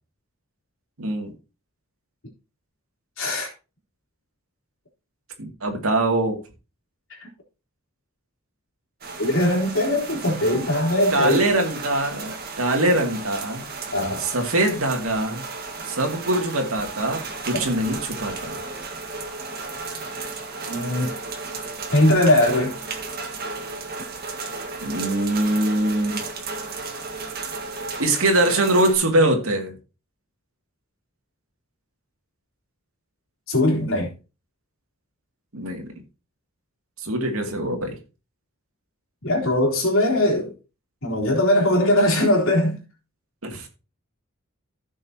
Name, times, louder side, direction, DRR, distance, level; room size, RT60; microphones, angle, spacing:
voice 1, 1.0-1.3 5.4-6.4 11.1-13.6 14.2-15.4 15.8-18.6 24.8-26.2 28.0-29.8 35.5-35.9 37.0-37.9 43.4-43.7, right 1 dB, 85° right, 2.5 m, -23 dB
voice 2, 3.2-3.5 7.1-7.3 9.2-11.5 13.9-14.2 17.5-17.6 20.7-21.1 21.9-22.7 33.5-34.1 39.2-40.5 41.0-42.8, left 1 dB, 70° left, 3.5 m, -20 dB
sound 1, 9.0-28.9, right 4 dB, 50° right, 1.7 m, -34 dB
15.5 x 6.4 x 2.9 m
head